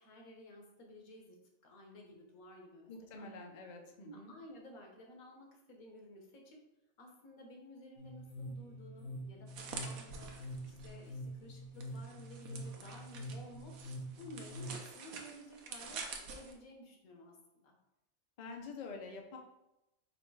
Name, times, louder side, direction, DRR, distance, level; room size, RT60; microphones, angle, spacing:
voice 1, 0.0-1.4 1.6-3.3 4.0-6.6 7.0-10.4 10.6-13.8 14.2-17.8, left 1 dB, 90° left, 2 dB, 1.4 m, -54 dB
voice 2, 2.9-4.3 18.4-19.4, left 4 dB, 45° left, 2 dB, 0.6 m, -47 dB
sound 1, 8.0-14.7, equal, 70° left, 1.6 m, -46 dB
sound 2, 9.5-11.1 11.8-16.5, right 5 dB, 85° right, 1.1 m, -48 dB
5.0 x 2.3 x 4.6 m, 0.91 s
omnidirectional pair, 1.4 m